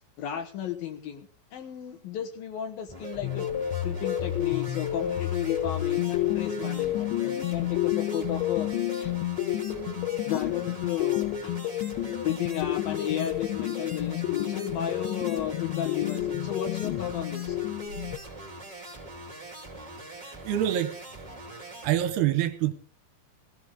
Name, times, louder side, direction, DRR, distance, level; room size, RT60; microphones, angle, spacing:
voice 1, 0.2-3.5 3.8-9.1 10.3-11.5 12.2-17.6, left 10 dB, 65° left, 5 dB, 2.7 m, -34 dB
sound 1, 2.9-21.9, right 2 dB, 10° right, 2.4 m, -43 dB
sound 2, 3.2-18.2, left 13 dB, 85° left, 3.4 m, -30 dB
voice 2, 20.2-21.0 21.8-22.7, right 12 dB, 75° right, 10 dB, 2.8 m, -26 dB
17.5 x 17.5 x 3.7 m, 0.38 s
omnidirectional pair, 5.2 m